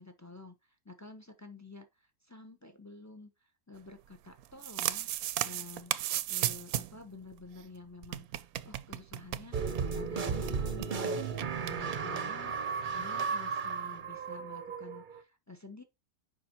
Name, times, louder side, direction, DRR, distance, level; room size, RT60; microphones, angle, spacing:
voice 1, 0.0-5.1 5.4-15.8, left 3 dB, 20° left, 0.4 m, -50 dB
sound 1, 4.4-7.0 7.3-7.4 7.6-7.7 8.0-9.9 10.2-10.3 10.5-10.9 11.4-12.0, right 12 dB, 70° right, 1.0 m, -35 dB
sound 2, 9.5-15.2, right 5 dB, 45° right, 0.7 m, -34 dB
7.1 x 5.3 x 2.9 m
omnidirectional pair, 1.7 m